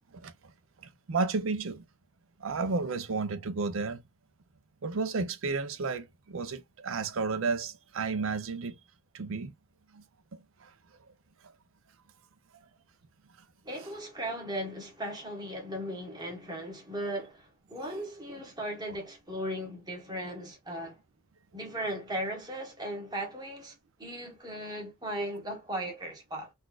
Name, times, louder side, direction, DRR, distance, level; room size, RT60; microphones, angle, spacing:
voice 1, 1.1-1.8 2.4-4.0 4.8-8.8 9.1-9.5 9.9-10.0 10.6-10.7, right 4 dB, 70° right, 0.6 m, -32 dB
voice 2, 13.6-21.0 21.5-23.7 24.0-26.5, right 1 dB, 20° right, 1.2 m, -37 dB
4.1 x 2.4 x 2.3 m
head